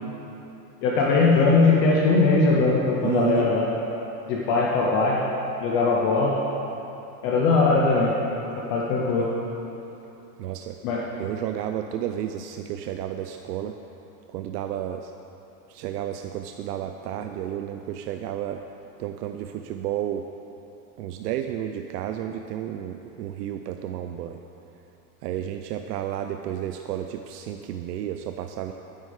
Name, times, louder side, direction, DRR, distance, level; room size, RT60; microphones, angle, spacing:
voice 1, 0.8-3.6 4.3-5.2 5.6-6.3 7.2-8.2 8.7-9.3 10.8-11.1, left 3 dB, 20° left, -3 dB, 0.4 m, -20 dB
voice 2, 3.0-3.5 10.4-10.8 11.2-13.7 14.3-15.1 15.7-18.6 19.0-20.2 21.0-24.4 25.2-28.7, right 11 dB, 85° right, 6 dB, 0.7 m, -31 dB
11.5 x 9.3 x 4.9 m, 2.9 s
supercardioid pair, 170°, 47 cm